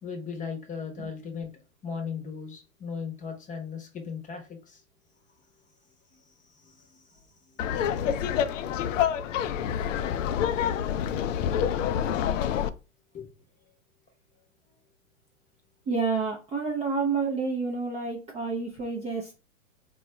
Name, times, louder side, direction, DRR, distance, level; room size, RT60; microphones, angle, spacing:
voice 1, 0.0-1.5 1.8-4.8 6.1-7.6 13.1-13.3, left 6 dB, 20° left, 5 dB, 0.8 m, -38 dB
Laughter, 7.6-12.7, left 9 dB, 70° left, 0.5 m, -27 dB
voice 2, 15.9-19.4, right 4 dB, 15° right, -2 dB, 0.4 m, -29 dB
3.9 x 2.3 x 3.0 m, 0.31 s
hypercardioid pair, 115°, 40 cm